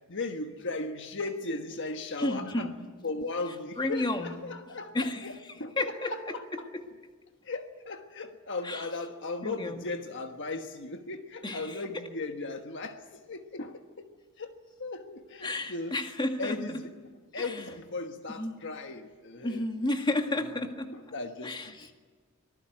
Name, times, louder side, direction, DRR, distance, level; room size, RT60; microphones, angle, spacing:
voice 1, 0.1-2.7 3.0-5.3 5.6-6.7 7.4-14.0 14.4-14.5 14.8-15.9 16.4-16.8 17.3-19.6 20.9-21.6, left 3 dB, 60° left, 6 dB, 1.4 m, -37 dB
voice 2, 2.2-2.8 3.8-4.4 4.9-6.8 8.6-8.9 9.4-9.9 11.4-12.1 15.4-16.8 17.4-17.7 18.3-18.6 19.4-20.9 21.4-21.9, left 2 dB, 20° left, 5 dB, 2.0 m, -32 dB
25.5 x 19.5 x 9.1 m, 1.5 s
head